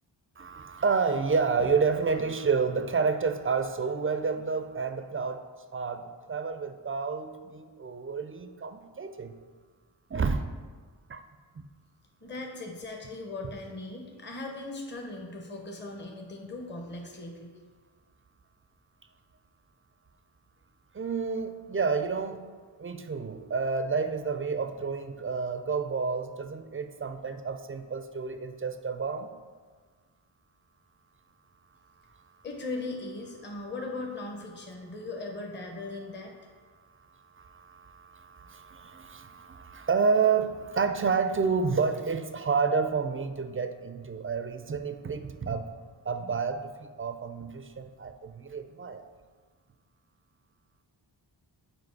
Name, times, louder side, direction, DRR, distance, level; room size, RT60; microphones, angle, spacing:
voice 1, 0.4-5.4 5.7-9.3 10.1-10.5 11.1-11.2 20.9-22.4 22.8-29.3 37.4-45.7 46.1-46.7 47.0-49.0, right 5 dB, 30° right, 8 dB, 0.4 m, -29 dB
voice 2, 12.2-17.5 32.4-36.3, left 2 dB, 25° left, 1 dB, 0.8 m, -38 dB
5.1 x 4.5 x 4.6 m, 1.5 s
cardioid pair, 50°, 45 cm